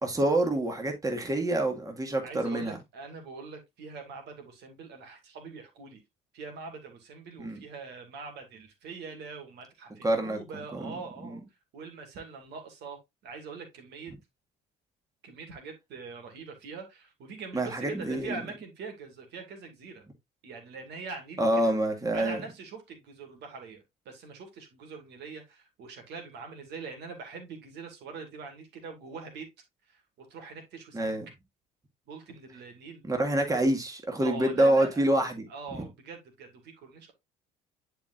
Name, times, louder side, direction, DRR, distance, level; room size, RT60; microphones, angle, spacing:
voice 1, 0.0-2.8 7.4-7.6 10.0-10.4 10.7-10.9 17.5-18.4 21.4-22.4 30.9-31.3 33.0-35.5, right 1 dB, 15° right, 2.1 m, -27 dB
voice 2, 2.2-6.0 6.3-11.4 11.7-14.1 15.2-20.1 20.4-21.7 22.1-29.5 29.9-31.1 32.1-33.0 34.2-35.1 35.5-37.1, right 4 dB, 60° right, 2.4 m, -43 dB
10.5 x 4.5 x 2.6 m
hypercardioid pair, 60°, 20 cm